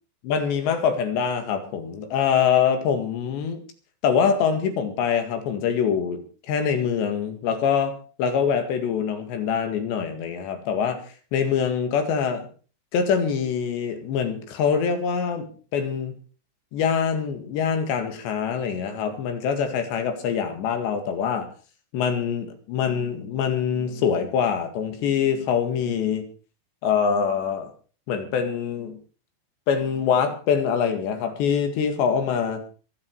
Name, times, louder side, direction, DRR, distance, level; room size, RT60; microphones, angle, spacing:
voice 1, 0.2-3.6 4.0-6.2 6.5-11.1 11.3-12.5 12.9-16.2 16.7-21.5 21.9-26.3 26.8-27.7 28.1-29.0 29.7-32.6, left 7 dB, 80° left, 7 dB, 4.2 m, -24 dB
25.0 x 8.3 x 4.7 m, 0.39 s
omnidirectional pair, 5.1 m